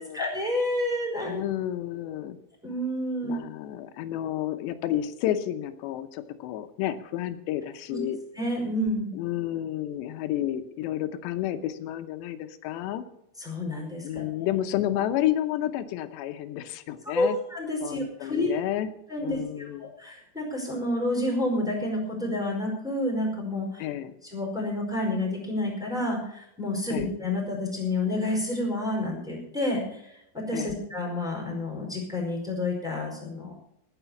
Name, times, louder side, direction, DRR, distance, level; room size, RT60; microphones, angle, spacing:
voice 1, 0.0-1.4 2.6-3.3 7.9-8.0 8.3-9.1 13.4-14.2 17.1-18.5 19.1-23.8 24.3-30.0 30.3-33.6, left 1 dB, ahead, 0 dB, 4.2 m, -29 dB
voice 2, 1.3-2.4 3.2-8.2 9.1-13.1 14.0-17.4 17.8-18.9 19.2-19.9 23.8-24.2 26.9-27.1 30.5-30.7, left 12 dB, 90° left, 9 dB, 3.1 m, -31 dB
20.0 x 6.7 x 7.0 m, 0.80 s
omnidirectional pair, 4.9 m